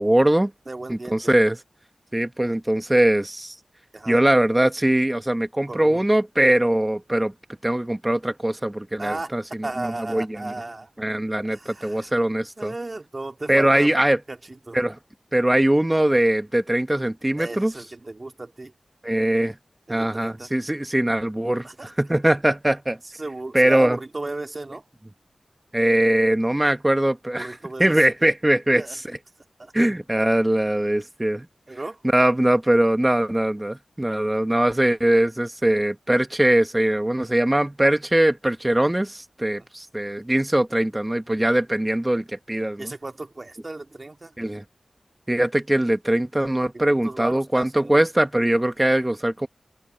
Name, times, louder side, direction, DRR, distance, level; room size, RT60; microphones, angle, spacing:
voice 1, 0.0-0.5 0.9-1.6 2.1-3.5 4.1-7.3 7.6-10.5 11.0-12.7 13.5-14.2 14.7-15.0 15.3-17.7 19.0-19.6 19.9-21.7 22.0-23.0 23.5-24.0 25.7-28.8 29.7-31.5 32.1-42.9 44.4-44.6 45.3-49.5, right 1 dB, 15° right, 1.4 m, -21 dB
voice 2, 0.7-1.3 3.9-4.2 5.7-6.0 9.0-9.4 9.6-10.9 11.4-12.1 12.6-13.9 14.3-14.8 17.4-18.7 19.9-20.5 21.6-21.9 23.2-24.8 27.3-27.9 28.7-29.0 29.6-29.7 31.7-32.0 39.6-39.7 42.8-44.3 46.7-48.0, right 2 dB, 35° right, 2.0 m, -35 dB
wide cardioid pair, 95°, 0 cm